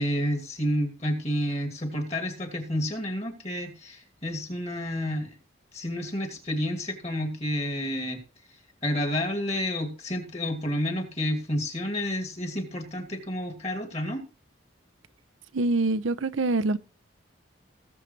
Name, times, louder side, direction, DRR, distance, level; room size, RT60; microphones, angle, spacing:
voice 1, 0.0-5.4 5.7-8.2 8.8-14.2, equal, 35° left, 2.6 m, -30 dB
voice 2, 15.5-16.8, right 2 dB, 85° right, 0.7 m, -25 dB
19.5 x 7.4 x 3.3 m
head